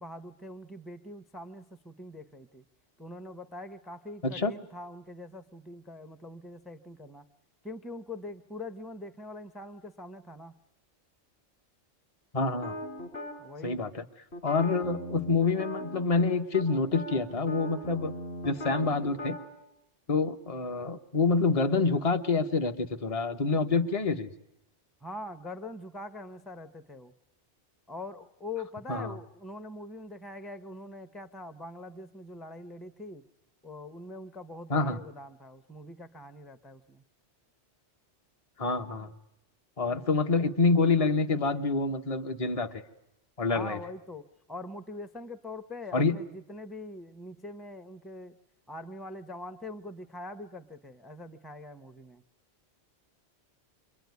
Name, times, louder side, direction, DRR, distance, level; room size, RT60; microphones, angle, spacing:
voice 1, 0.0-2.6 3.0-7.2 7.6-10.5 13.4-13.8 25.0-27.1 27.9-33.2 33.6-37.0 43.5-48.4 48.7-52.2, left 2 dB, ahead, 9 dB, 0.8 m, -43 dB
voice 2, 12.3-12.8 13.6-14.0 14.4-18.1 18.4-19.4 20.1-24.3 28.9-29.1 34.7-35.0 38.6-39.1 39.8-42.8 43.4-43.8 45.9-46.2, left 4 dB, 30° left, 7 dB, 1.2 m, -27 dB
sound 1, 12.6-13.4 14.3-16.3 16.5-16.7 16.9-19.4, equal, 60° left, 4.8 m, -38 dB
27.5 x 23.0 x 9.5 m, 0.84 s
omnidirectional pair, 1.2 m